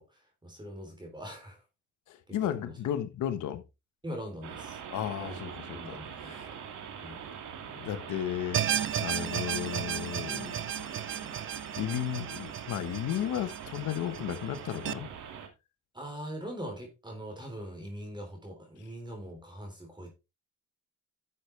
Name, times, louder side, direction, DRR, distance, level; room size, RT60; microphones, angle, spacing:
voice 1, 0.0-1.6 2.3-2.8 4.0-4.8 5.2-5.4 5.7-6.3 7.0-7.2 15.9-20.1, equal, 15° right, 3.4 m, -42 dB
voice 2, 2.1-3.6 4.9-6.5 7.7-8.6 9.0-10.9 11.8-15.1, left 10 dB, 80° left, 1.3 m, -34 dB
sound 1, 4.4-15.5, right 7 dB, 80° right, 2.3 m, -43 dB
sound 2, 8.5-14.9, right 10 dB, 45° right, 0.6 m, -34 dB
11.5 x 7.0 x 3.3 m
cardioid pair, 90°, 30 cm